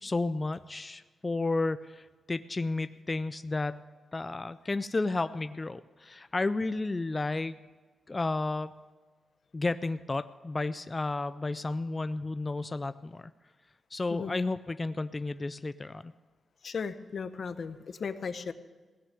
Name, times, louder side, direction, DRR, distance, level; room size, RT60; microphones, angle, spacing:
voice 1, 0.0-3.8 4.1-7.5 8.1-8.7 9.5-13.3 13.9-16.1, left 3 dB, 25° left, 13 dB, 0.3 m, -32 dB
voice 2, 14.1-14.4 16.6-18.5, left 5 dB, 55° left, 11 dB, 0.7 m, -36 dB
17.0 x 6.4 x 9.2 m, 1.4 s
cardioid pair, 90°, 0 cm